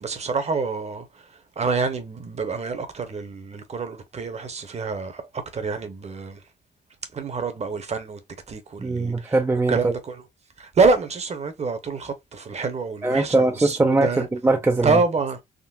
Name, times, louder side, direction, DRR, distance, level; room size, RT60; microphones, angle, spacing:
voice 1, 0.0-1.3 1.6-5.2 5.5-6.4 7.1-8.2 8.5-9.3 9.7-10.2 10.6-14.3 14.8-15.4, right 4 dB, 35° right, 0.8 m, -26 dB
voice 2, 8.8-9.9 13.0-15.0, right 2 dB, 15° right, 0.4 m, -21 dB
3.7 x 2.0 x 2.3 m
cardioid pair, 90°, 18 cm